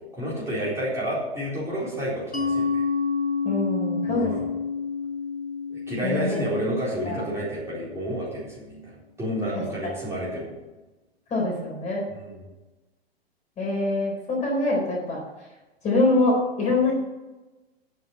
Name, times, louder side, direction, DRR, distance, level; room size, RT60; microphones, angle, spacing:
voice 1, 0.1-2.8 4.1-4.5 5.7-10.5 12.1-12.4, equal, 10° right, -8 dB, 4.0 m, -30 dB
Mallet percussion, 2.3-7.7, left 5 dB, 90° left, 1.4 m, -29 dB
voice 2, 3.4-4.3 6.0-6.4 7.0-7.2 9.5-9.9 11.3-12.0 13.6-15.2 15.8-16.9, left 2 dB, 20° left, -3 dB, 4.1 m, -24 dB
9.4 x 6.7 x 7.5 m, 1.1 s
figure-of-eight pair, 105°, 32 cm